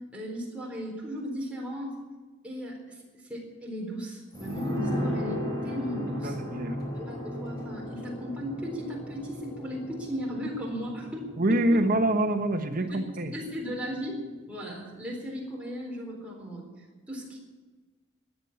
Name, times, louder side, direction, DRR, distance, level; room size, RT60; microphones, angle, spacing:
voice 1, 0.1-2.0 2.4-6.4 6.9-11.8 12.8-13.0 13.3-14.2 14.5-17.4, equal, 5° right, -3 dB, 4.0 m, -36 dB
sound 1, 4.3-13.6 13.9-14.0, equal, 20° left, 4.1 m, -36 dB
voice 2, 6.2-6.7 11.4-13.3, right 1 dB, 45° right, 5 dB, 1.2 m, -25 dB
14.5 x 9.5 x 8.6 m, 1.4 s
head